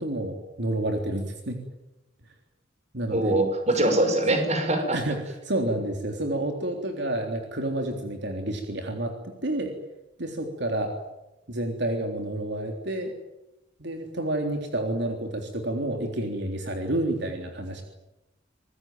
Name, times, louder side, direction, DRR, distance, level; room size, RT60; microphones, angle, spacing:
voice 1, 0.0-1.6 2.9-3.4 3.8-3.9 4.3-4.4 4.9-9.7 10.2-10.9 11.5-13.1 13.8-17.8, right 1 dB, 65° right, 3 dB, 3.5 m, -29 dB
voice 2, 3.1-5.0, right 1 dB, 35° right, 6 dB, 6.0 m, -23 dB
26.5 x 20.5 x 9.2 m, 0.93 s
head